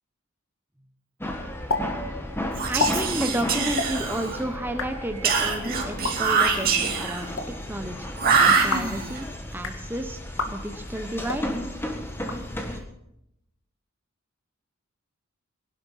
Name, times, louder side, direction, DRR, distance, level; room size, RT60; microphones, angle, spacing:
sound 1, 1.2-12.8, left 1 dB, 10° left, 1.6 m, -34 dB
sound 2, 1.7-1.8 2.1-2.2 2.6-2.9 3.7-3.9 4.6-4.9 5.9-6.1 7.1-7.5 8.5-8.9 9.5-9.8 10.3-10.5 11.2-11.4 12.1-12.8, left 3 dB, 65° left, 2.1 m, -30 dB
Whispering, 2.5-4.5 5.2-7.3 8.2-9.2, right 5 dB, 45° right, 2.5 m, -24 dB
voice 1, 2.7-7.4 7.7-8.1 8.4-10.2 10.5-11.5, right 1 dB, 10° right, 6 dB, 0.9 m, -31 dB
20.5 x 11.5 x 5.5 m, 0.83 s
head